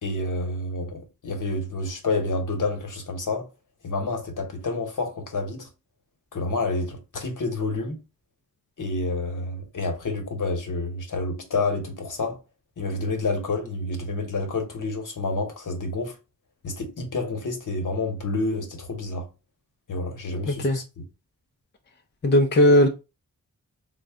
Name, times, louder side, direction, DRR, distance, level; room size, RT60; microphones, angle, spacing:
voice 1, 0.0-3.5 3.8-5.7 6.3-8.0 8.8-12.4 12.8-16.1 16.6-19.3 19.9-20.8, left 2 dB, 65° left, 1.0 m, -29 dB
voice 2, 20.5-20.8 22.2-22.9, left 1 dB, 30° left, 0.5 m, -17 dB
3.8 x 2.1 x 3.5 m
wide cardioid pair, 120°, 34 cm